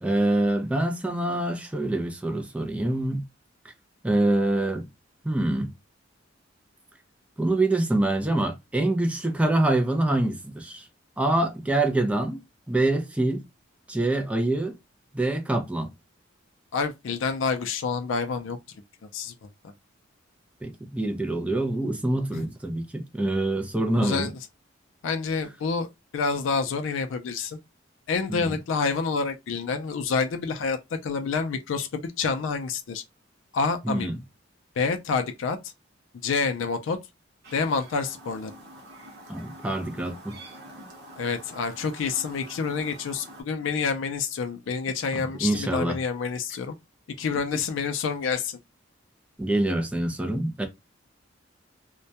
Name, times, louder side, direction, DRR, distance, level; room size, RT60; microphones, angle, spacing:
voice 1, 0.0-3.2 4.0-4.8 5.2-5.7 7.4-10.9 11.2-12.4 12.7-13.4 13.9-14.8 15.1-15.9 20.6-24.3 28.3-28.6 33.8-34.2 39.3-40.4 45.1-46.0 49.4-50.7, right 1 dB, 5° right, 0.4 m, -25 dB
voice 2, 16.7-18.6 19.1-19.3 22.3-22.5 24.0-24.3 25.0-25.9 26.1-27.6 28.1-33.0 33.5-34.1 34.8-35.6 36.2-37.0 37.5-38.5 41.2-46.8 47.2-48.6, left 5 dB, 75° left, 0.4 m, -28 dB
Chirp tweet, 37.4-43.4, right 1 dB, 55° right, 0.8 m, -46 dB
2.2 x 2.1 x 2.7 m
head